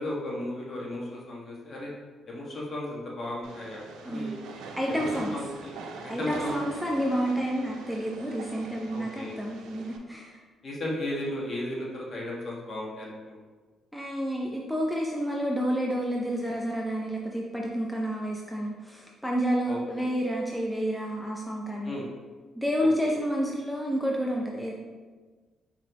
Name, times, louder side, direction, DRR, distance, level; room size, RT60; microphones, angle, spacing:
voice 1, 0.0-1.9 2.3-4.4 4.9-5.0 5.3-5.7 6.0-6.6 8.9-9.4 10.6-13.4 19.6-20.1 21.8-22.1 22.8-23.2, left 1 dB, 45° left, -4 dB, 1.4 m, -35 dB
Train, 3.4-10.0, right 4 dB, 90° right, 0.5 m, -43 dB
voice 2, 4.1-4.4 4.8-5.4 6.1-10.4 13.9-21.9 22.6-24.7, equal, ahead, -2 dB, 0.6 m, -29 dB
4.7 x 3.7 x 2.9 m, 1.4 s
cardioid pair, 90°, 0 cm